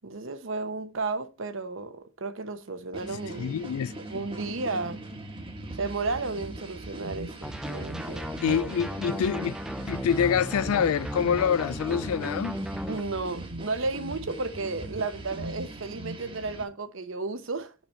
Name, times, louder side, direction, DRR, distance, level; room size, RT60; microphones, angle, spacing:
voice 1, 0.0-3.6 4.1-5.0 5.8-8.6 9.0-9.2 12.9-17.7, right 3 dB, 65° right, 0.9 m, -33 dB
sound 1, 2.9-16.6, right 1 dB, 25° right, 1.1 m, -40 dB
voice 2, 3.4-4.0 8.4-9.5 9.9-12.6, left 7 dB, 90° left, 0.3 m, -26 dB
sound 2, 7.4-13.0, equal, 5° right, 0.5 m, -35 dB
6.7 x 6.0 x 4.3 m
head